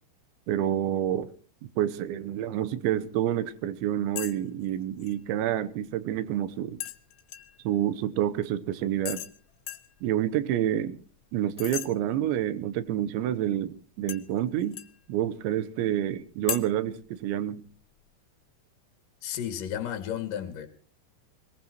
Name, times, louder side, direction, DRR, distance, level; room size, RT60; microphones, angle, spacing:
voice 1, 0.5-1.3 1.8-6.8 7.6-9.2 10.0-11.0 11.3-14.8 15.1-17.6, right 11 dB, 75° right, 3.1 m, -28 dB
sound 1, 4.2-4.4 4.6-5.2 6.8-7.6 9.1-9.4 9.7-9.9 11.6-11.9 14.1-15.0 16.5-16.6, left 12 dB, 80° left, 3.5 m, -36 dB
voice 2, 19.2-20.7, left 10 dB, 50° left, 3.3 m, -33 dB
22.0 x 20.0 x 3.0 m
omnidirectional pair, 5.5 m